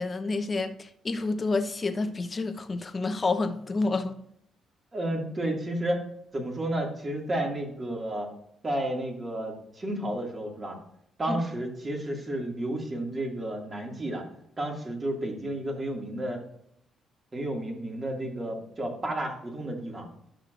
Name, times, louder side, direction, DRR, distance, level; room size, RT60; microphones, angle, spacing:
voice 1, 0.0-4.1 11.3-11.4, left 3 dB, 30° left, 0.9 m, -29 dB
voice 2, 4.9-6.1 6.3-8.3 8.6-10.8 11.2-14.2 14.6-16.4 17.3-20.1, right 1 dB, 30° right, 2.2 m, -31 dB
11.5 x 6.4 x 2.5 m
cardioid pair, 90°, 0 cm